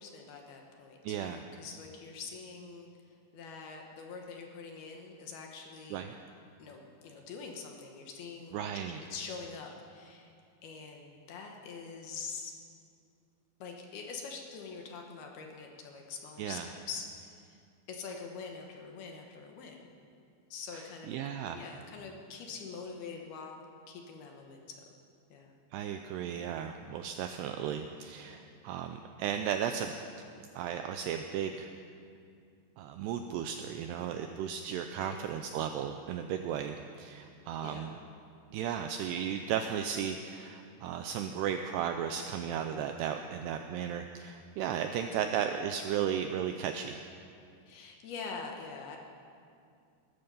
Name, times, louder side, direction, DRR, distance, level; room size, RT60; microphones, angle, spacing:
voice 1, 0.0-2.9 3.3-6.1 6.6-10.3 10.6-12.5 13.6-17.6 17.9-19.9 20.5-21.2 21.5-23.6 23.9-24.8 25.3-25.5 28.2-28.5 34.6-34.7 35.0-35.3 37.6-38.0 45.0-45.1 45.4-45.5 47.7-49.0, left 5 dB, 70° left, 2 dB, 2.7 m, -45 dB
voice 2, 1.0-1.4 5.9-6.2 8.5-9.0 16.4-16.7 20.7-20.8 21.1-21.6 25.7-29.9 30.5-31.7 32.8-38.0 38.5-47.0, right 9 dB, 85° right, 6 dB, 2.4 m, -35 dB
21.0 x 12.5 x 5.5 m, 2.4 s
omnidirectional pair, 5.4 m